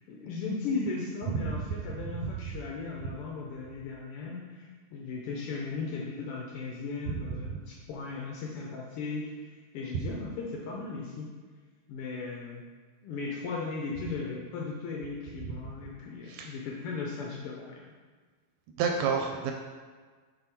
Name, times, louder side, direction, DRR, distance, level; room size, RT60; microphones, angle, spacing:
voice 1, 0.1-11.3 11.9-12.7 13.0-17.8, left 4 dB, 90° left, -2 dB, 1.2 m, -37 dB
voice 2, 18.8-19.5, right 6 dB, 85° right, 2 dB, 1.9 m, -29 dB
5.6 x 3.8 x 4.4 m, 1.5 s
omnidirectional pair, 3.3 m